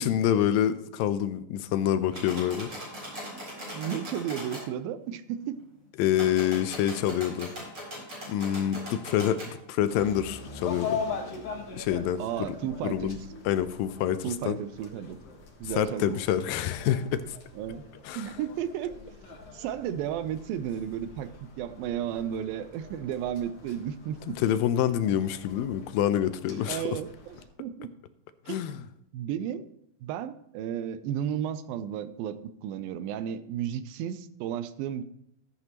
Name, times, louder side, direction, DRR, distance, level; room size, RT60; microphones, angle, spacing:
voice 1, 0.0-2.7 6.0-7.5 8.3-9.4 9.7-11.0 11.7-12.2 12.8-13.2 13.5-14.6 15.8-17.4 18.1-18.3 24.4-27.0 28.5-28.8, left 10 dB, 80° left, 12 dB, 2.3 m, -27 dB
sound 1, 2.1-4.6 6.1-9.5, equal, 35° right, 4.3 m, -40 dB
voice 2, 3.7-5.6 12.2-13.1 14.2-15.2 15.6-16.2 17.6-17.8 18.2-19.0 19.3-21.3 21.6-24.4 26.7-27.9 28.5-28.8 29.1-29.7 30.0-35.0, right 9 dB, 85° right, 13 dB, 2.3 m, -33 dB
sound 2, 9.9-27.5, left 5 dB, 55° left, 2.0 m, -42 dB
14.0 x 8.0 x 3.0 m, 0.78 s
omnidirectional pair, 4.2 m